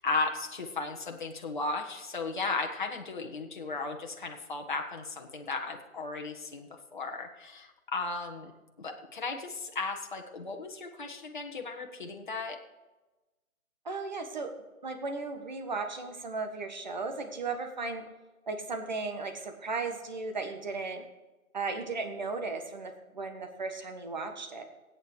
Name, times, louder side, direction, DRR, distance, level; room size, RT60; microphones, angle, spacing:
voice 1, 0.0-8.5 8.8-12.6, left 3 dB, 35° left, 2 dB, 1.4 m, -35 dB
voice 2, 13.8-14.5 14.8-18.0 18.5-21.0 21.5-24.6, right 3 dB, 30° right, 5 dB, 1.5 m, -36 dB
17.5 x 9.1 x 4.9 m, 1.1 s
figure-of-eight pair, 150°, 42 cm